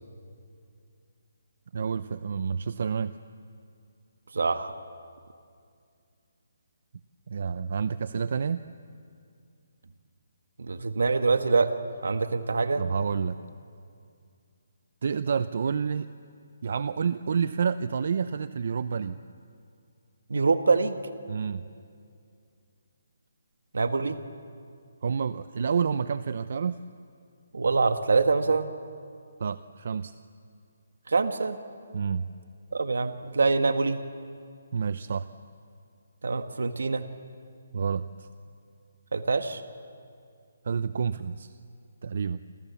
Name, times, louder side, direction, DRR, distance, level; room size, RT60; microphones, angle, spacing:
voice 1, 1.7-3.2 7.3-8.6 12.8-13.4 15.0-16.1 16.6-19.2 21.3-21.6 25.0-26.8 29.4-30.1 31.9-32.3 34.7-35.3 37.7-38.3 40.6-41.5 42.0-42.4, right 6 dB, 50° right, 13 dB, 0.7 m, -29 dB
voice 2, 4.3-4.7 10.6-11.7 12.0-12.8 20.3-21.0 23.7-24.2 27.5-28.7 31.1-31.6 32.7-34.0 36.2-37.0 39.1-39.6, right 4 dB, 80° right, 8 dB, 1.6 m, -24 dB
30.0 x 27.5 x 7.2 m, 2.3 s
hypercardioid pair, 170°, 0 cm